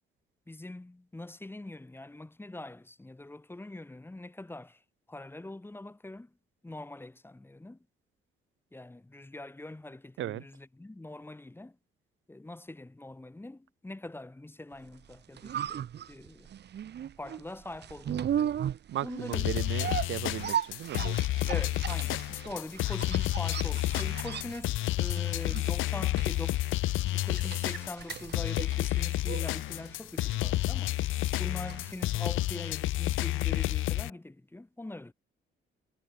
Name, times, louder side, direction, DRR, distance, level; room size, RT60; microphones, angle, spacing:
voice 1, 0.5-4.8 5.1-6.3 6.6-7.8 8.7-11.8 12.3-16.5 17.2-18.5 19.0-19.5 21.5-26.6 27.0-31.0 31.4-35.1, left 2 dB, 10° left, 1.5 m, -43 dB
sound 1, 15.0-33.0 33.3-33.4, right 9 dB, 60° right, 1.6 m, -38 dB
voice 2, 18.9-21.2, right 13 dB, 80° right, 3.4 m, -36 dB
sound 2, 19.3-34.1, left 17 dB, 85° left, 0.8 m, -30 dB
cardioid pair, 90°, 20 cm